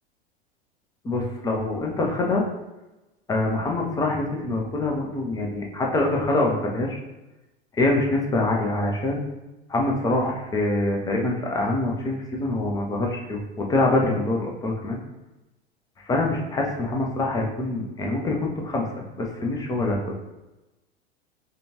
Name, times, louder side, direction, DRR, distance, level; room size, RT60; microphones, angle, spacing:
voice 1, 1.0-2.4 3.3-7.0 7.7-9.2 9.7-15.0 16.1-18.8 19.2-20.0, left 2 dB, 10° left, 0 dB, 0.6 m, -25 dB
5.0 x 2.3 x 2.9 m, 1.0 s
figure-of-eight pair, 90°, 33 cm